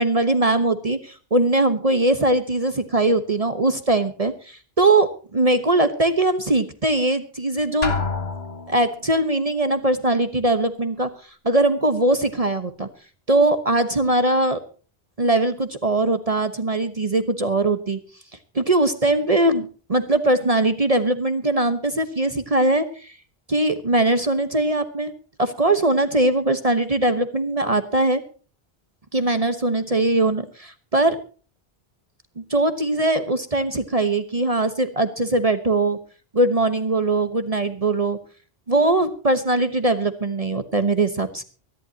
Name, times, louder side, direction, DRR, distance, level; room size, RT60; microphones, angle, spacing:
voice 1, 0.0-7.9 8.7-11.1 11.4-12.9 13.3-14.6 15.2-18.0 18.5-23.1 23.5-25.1 25.4-28.2 29.1-31.1 32.4-36.0 36.3-38.2 38.7-41.4, right 2 dB, 35° right, 9 dB, 1.2 m, -21 dB
Drum, 7.8-9.0, left 4 dB, 80° left, 1.8 m, -27 dB
24.5 x 11.5 x 2.9 m, 0.39 s
omnidirectional pair, 1.0 m